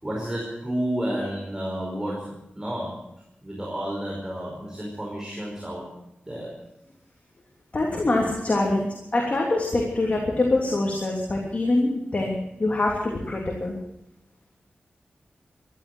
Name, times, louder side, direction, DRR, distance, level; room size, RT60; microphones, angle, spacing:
voice 1, 0.0-3.0 3.4-5.9 6.2-6.5, right 1 dB, 15° right, -3 dB, 4.8 m, -31 dB
voice 2, 7.7-13.7, left 2 dB, 40° left, -1 dB, 3.1 m, -24 dB
15.0 x 12.0 x 8.0 m, 0.85 s
wide cardioid pair, 85°, 4 cm